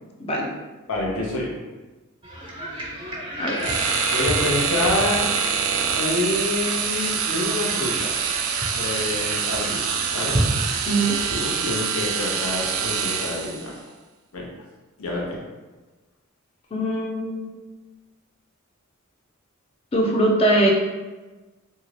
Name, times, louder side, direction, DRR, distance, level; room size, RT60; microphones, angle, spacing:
voice 1, 0.2-0.5 3.4-3.6 10.8-11.2 16.7-17.6 19.9-20.7, right 1 dB, 25° left, -1 dB, 0.4 m, -22 dB
voice 2, 0.9-1.6 3.6-3.8 4.1-5.3 6.0-8.2 8.7-9.8 10.1-10.4 11.3-13.7 14.3-14.5 15.0-15.4, left 2 dB, 80° left, -3 dB, 0.8 m, -27 dB
sound 1, 2.2-11.5, right 1 dB, 25° right, 0.5 m, -31 dB
sound 2, 3.6-13.7, right 6 dB, 75° right, 0.3 m, -25 dB
2.7 x 2.3 x 3.1 m, 1.2 s
head